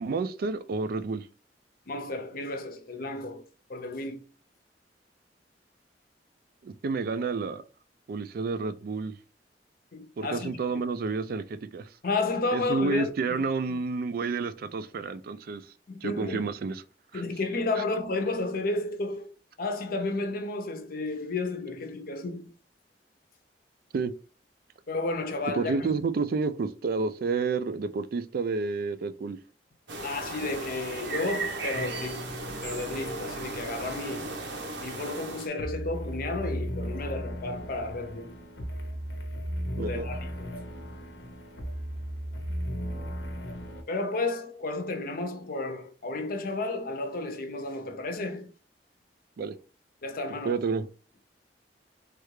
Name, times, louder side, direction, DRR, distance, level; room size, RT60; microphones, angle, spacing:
voice 1, 0.0-1.3 6.6-7.6 8.1-9.1 10.2-11.9 12.5-15.7 16.0-16.8 17.1-17.2 23.9-24.1 25.5-29.4 39.8-40.1 49.4-49.6 50.4-50.9, right 4 dB, 55° right, 0.4 m, -30 dB
voice 2, 1.9-3.4 3.7-4.2 9.9-10.6 12.0-13.4 13.7-13.8 15.9-16.4 17.1-22.5 24.9-25.9 30.0-32.3 32.6-34.4 34.8-38.3 39.8-40.5 43.7-48.5 50.0-50.7, left 2 dB, 55° left, 0.6 m, -32 dB
sound 1, 29.9-35.5, right 3 dB, 85° right, 0.8 m, -36 dB
sound 2, 31.7-43.8, equal, 90° left, 0.8 m, -37 dB
3.3 x 2.4 x 3.1 m
head